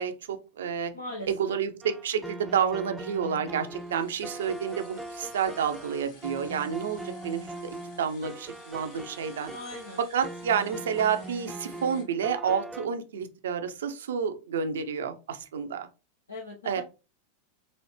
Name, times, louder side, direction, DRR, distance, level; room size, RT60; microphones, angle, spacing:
voice 1, 0.0-0.9 1.3-9.5 10.0-15.9 16.6-16.8, right 7 dB, 60° right, 9 dB, 0.5 m, -30 dB
voice 2, 0.9-1.5 9.5-10.0 16.3-16.8, left 1 dB, 80° left, -1 dB, 0.8 m, -40 dB
sound 1, 1.8-12.9, right 2 dB, 5° right, 0.3 m, -41 dB
sound 2, 3.6-12.0, left 4 dB, 45° left, 1.1 m, -54 dB
4.1 x 2.7 x 3.1 m, 0.31 s
figure-of-eight pair, 90°, 0 cm